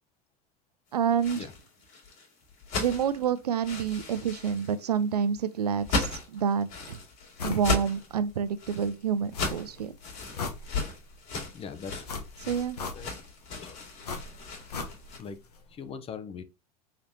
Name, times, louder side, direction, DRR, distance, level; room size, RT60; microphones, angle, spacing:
voice 1, 0.9-1.4 2.8-7.0 7.4-9.9 12.4-12.8, right 7 dB, 90° right, 0.4 m, -28 dB
sound 1, 1.0-15.2, left 3 dB, 60° left, 2.3 m, -36 dB
sound 2, 7.4-7.7 8.1-8.2 9.3-9.8 10.2-11.1 12.0-13.3 14.0-15.3 15.5-15.6, left 4 dB, 85° left, 1.0 m, -37 dB
voice 2, 11.5-12.3 12.9-13.2 13.6-13.9 15.2-15.4 15.7-16.4, left 6 dB, 30° left, 0.6 m, -41 dB
3.9 x 3.3 x 2.7 m
hypercardioid pair, 90°, 20 cm